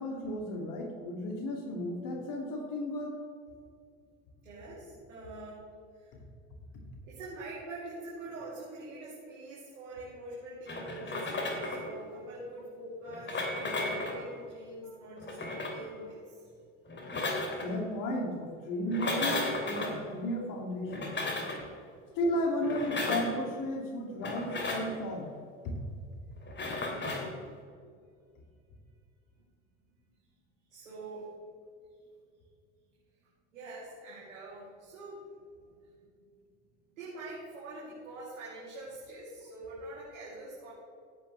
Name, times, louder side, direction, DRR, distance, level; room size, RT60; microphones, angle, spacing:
voice 1, 0.0-3.1 14.8-14.9 16.0-16.1 17.6-21.1 22.1-25.3, left 1 dB, 55° left, 1 dB, 2.8 m, -34 dB
voice 2, 4.4-5.6 5.9-6.1 7.0-16.5 26.8-27.2 30.7-31.3 33.5-35.2 36.9-40.7, right 2 dB, 85° right, -8 dB, 3.3 m, -44 dB
sound 1, 10.7-11.9 13.1-14.2 15.2-15.8 16.9-17.7 18.8-19.9 20.9-21.6 22.6-23.3 24.2-24.9 26.5-27.3, left 2 dB, 30° left, 2.9 m, -34 dB
16.0 x 9.1 x 3.4 m, 2.3 s
hypercardioid pair, 70°, 39 cm